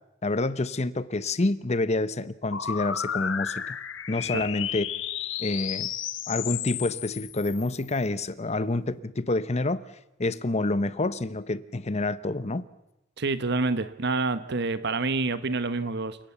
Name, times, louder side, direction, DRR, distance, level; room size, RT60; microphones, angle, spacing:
voice 1, 0.2-3.8 4.1-4.9 5.4-5.9 6.3-9.8 10.2-12.6, left 2 dB, 35° left, 0.8 m, -28 dB
sound 1, 2.5-8.0, left 9 dB, 70° left, 1.2 m, -33 dB
voice 2, 13.2-16.2, right 3 dB, 60° right, 1.1 m, -27 dB
29.0 x 18.0 x 7.2 m
head